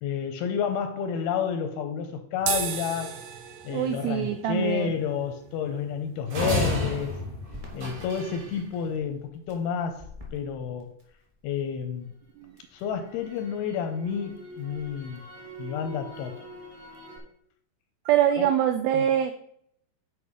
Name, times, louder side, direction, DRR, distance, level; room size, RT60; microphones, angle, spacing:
voice 1, 0.0-3.2 3.6-7.2 7.8-10.9 11.4-12.1 12.7-15.3 15.6-16.4 18.4-18.5 18.9-19.1, left 7 dB, 85° left, 7 dB, 2.3 m, -30 dB
sound 1, 2.4-9.0, right 7 dB, 75° right, 1.9 m, -38 dB
voice 2, 3.7-5.0 12.4-12.6 18.1-19.3, right 10 dB, 90° right, 8 dB, 2.1 m, -24 dB
sound 2, 6.3-8.5, left 1 dB, 55° right, 4.0 m, -30 dB
Crackle, 7.5-11.6 12.0-17.2, equal, 15° right, 1.1 m, -45 dB
9.7 x 4.8 x 4.9 m, 0.71 s
omnidirectional pair, 5.0 m